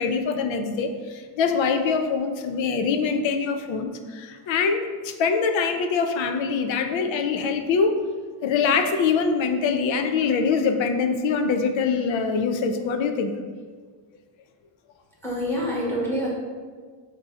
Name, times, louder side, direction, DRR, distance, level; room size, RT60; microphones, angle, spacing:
voice 1, 0.0-8.0 8.4-13.4, left 5 dB, 70° left, 6 dB, 0.6 m, -24 dB
voice 2, 15.2-16.3, equal, 5° left, -6 dB, 1.1 m, -26 dB
3.8 x 2.8 x 4.8 m, 1.5 s
wide cardioid pair, 145°, 47 cm